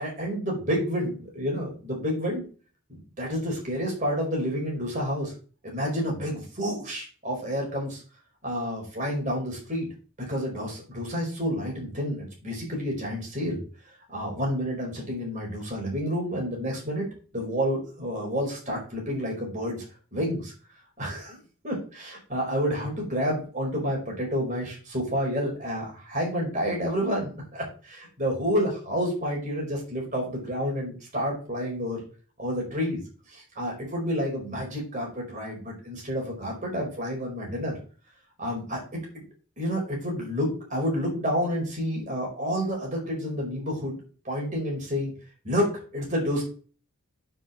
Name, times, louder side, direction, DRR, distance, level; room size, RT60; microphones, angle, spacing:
voice 1, 0.0-2.4 2.9-5.3 5.6-8.0 8.4-9.9 10.2-13.6 14.1-19.8 20.1-20.5 21.0-21.4 21.6-32.0 32.4-33.0 33.3-37.8 38.4-39.2 39.6-44.0 44.2-45.1 45.4-46.4, equal, 35° right, -1 dB, 4.8 m, -29 dB
7.8 x 5.8 x 7.4 m, 0.38 s
head